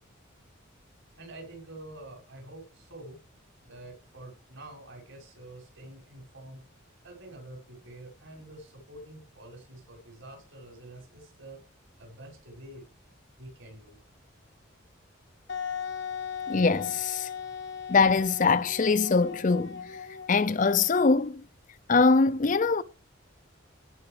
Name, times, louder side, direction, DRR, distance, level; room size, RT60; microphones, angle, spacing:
voice 1, 1.2-3.2 3.6-6.6 7.0-11.6 12.0-12.8 13.4-14.0, right 1 dB, 70° right, 6.2 m, -47 dB
Wind instrument woodwind instrument, 15.5-21.1, left 7 dB, 60° left, 0.9 m, -38 dB
voice 2, 16.5-17.3 17.9-19.9 20.3-21.4 21.9-22.8, left 4 dB, 40° left, 0.5 m, -23 dB
17.0 x 5.8 x 5.0 m
head